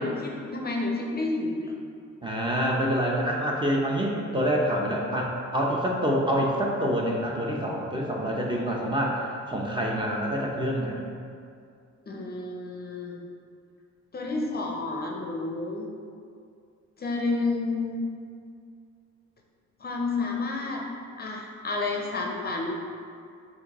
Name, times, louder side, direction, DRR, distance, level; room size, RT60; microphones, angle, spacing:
voice 1, 0.0-1.7 12.1-13.2 14.1-15.9 17.0-18.1 19.8-20.8 21.2-22.7, left 3 dB, 30° left, 0 dB, 0.5 m, -30 dB
voice 2, 2.2-11.1, equal, 15° right, -2 dB, 0.6 m, -26 dB
6.1 x 2.6 x 3.0 m, 2.3 s
cardioid pair, 90°, 30 cm